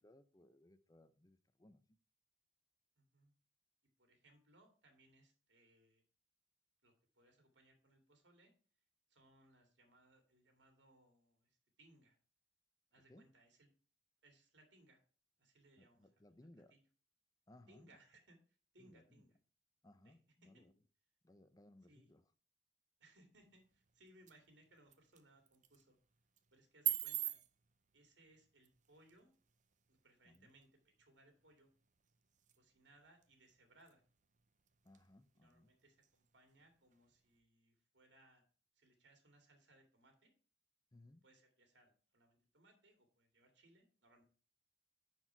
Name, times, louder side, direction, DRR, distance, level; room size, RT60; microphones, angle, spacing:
voice 1, 0.0-1.8 13.1-13.3 15.8-16.7 17.5-18.0 18.8-19.2 19.8-20.7 21.2-22.2 30.2-30.5 34.8-35.7 40.9-41.2, left 1 dB, 20° left, 0.6 m, -64 dB
voice 2, 3.0-3.3 4.0-6.0 6.8-8.5 9.1-12.2 12.9-13.7 14.2-15.0 15.4-16.1 16.5-16.8 17.7-19.4 19.9-20.7 21.9-22.2 23.0-26.0 26.5-27.4 27.9-29.3 29.9-30.7 31.0-31.7 32.6-34.0 35.3-38.4 38.7-40.3 41.2-44.2, right 1 dB, 70° right, 2.5 m, -68 dB
sound 1, 23.4-37.4, right 13 dB, 40° right, 0.6 m, -49 dB
9.8 x 4.6 x 4.5 m
head